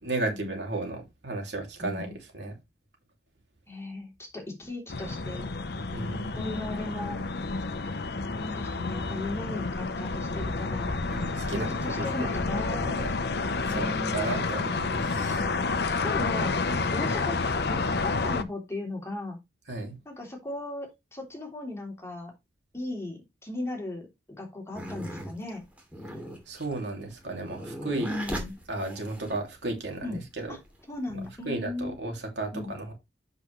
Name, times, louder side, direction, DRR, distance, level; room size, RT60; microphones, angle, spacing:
voice 1, 0.0-2.6 5.9-6.3 11.1-12.0 12.3-12.4 12.7-13.1 13.7-15.5 19.7-20.0 26.5-28.2 28.7-30.5 31.1-31.2 31.4-32.9, right 2 dB, 75° right, 2.8 m, -34 dB
voice 2, 1.8-2.1 3.7-5.5 6.3-7.2 8.2-11.0 11.5-12.9 13.6-14.5 15.2-16.5 16.9-17.4 17.7-19.4 20.0-22.3 22.7-24.1 24.4-25.6 28.0-28.5 30.0-30.2 30.5-30.6 30.9-31.9 32.5-32.7, left 2 dB, 15° left, 3.2 m, -37 dB
sound 1, 4.9-18.4, left 3 dB, 65° left, 0.8 m, -30 dB
sound 2, 24.7-29.6 30.4-31.3, equal, 10° right, 2.7 m, -38 dB
8.1 x 6.7 x 3.2 m
head